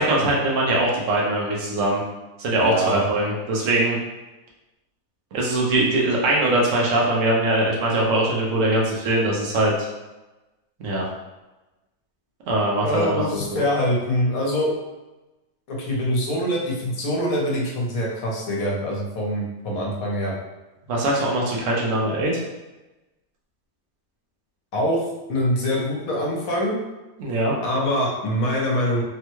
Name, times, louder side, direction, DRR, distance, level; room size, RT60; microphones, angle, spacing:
voice 1, 0.0-2.0 2.4-4.0 5.3-9.9 10.8-11.1 12.5-13.6 20.9-22.4 27.2-27.5, right 1 dB, 60° right, -3 dB, 1.1 m, -22 dB
voice 2, 2.5-3.0 12.8-14.7 15.7-20.4 24.7-26.8 27.6-29.0, equal, 70° left, -3 dB, 1.2 m, -24 dB
3.5 x 2.2 x 3.0 m, 1.1 s
omnidirectional pair, 1.6 m